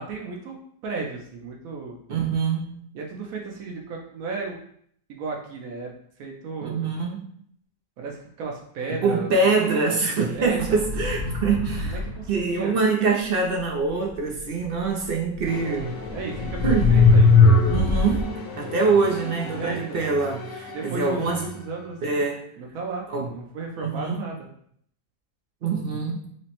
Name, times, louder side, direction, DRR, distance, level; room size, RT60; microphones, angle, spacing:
voice 1, 0.0-2.0 2.9-4.6 5.1-5.9 6.2-6.9 8.0-9.6 10.3-10.8 11.8-12.7 16.1-17.4 19.5-20.0 20.7-22.2 22.6-24.5, right 3 dB, 90° right, 0 dB, 1.1 m, -34 dB
voice 2, 2.1-2.7 6.6-7.3 9.0-12.0 12.3-16.0 16.6-16.9 17.7-21.4 22.0-22.5 23.1-23.3 23.8-24.2 25.6-26.2, right 4 dB, 60° right, 0 dB, 0.6 m, -24 dB
sound 1, 10.5-12.3 15.4-15.5 16.3-18.2, left 4 dB, 60° left, 0.8 m, -19 dB
sound 2, 15.4-22.0, left 2 dB, 85° left, 1.1 m, -38 dB
5.9 x 2.1 x 2.9 m, 0.66 s
omnidirectional pair, 1.4 m